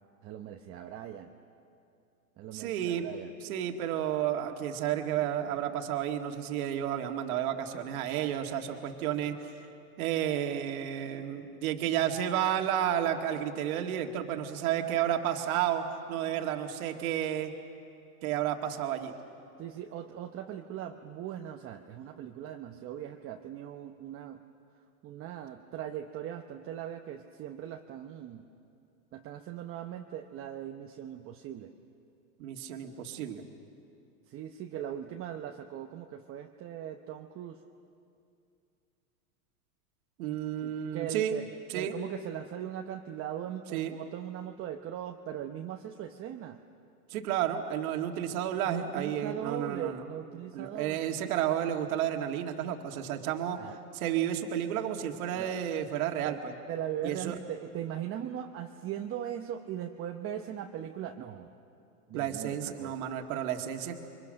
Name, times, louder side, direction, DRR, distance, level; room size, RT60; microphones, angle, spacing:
voice 1, 0.2-1.3 2.4-3.3 19.6-24.4 25.0-28.5 29.1-31.7 34.3-37.6 40.6-41.4 41.7-46.6 48.6-51.1 53.2-53.3 53.6-53.8 55.3-55.5 56.2-56.4 56.7-61.5 62.1-62.9, right 10 dB, 30° right, 4 dB, 0.9 m, -39 dB
voice 2, 2.5-3.1 3.4-9.4 10.0-17.5 18.2-19.1 32.4-33.5 40.2-41.4 41.7-41.9 43.7-44.0 47.1-50.0 50.5-53.6 53.9-56.5 57.0-57.4 62.1-64.0, right 10 dB, 65° right, 3 dB, 2.1 m, -31 dB
29.5 x 24.0 x 6.6 m, 2.6 s
supercardioid pair, 130°, 45 cm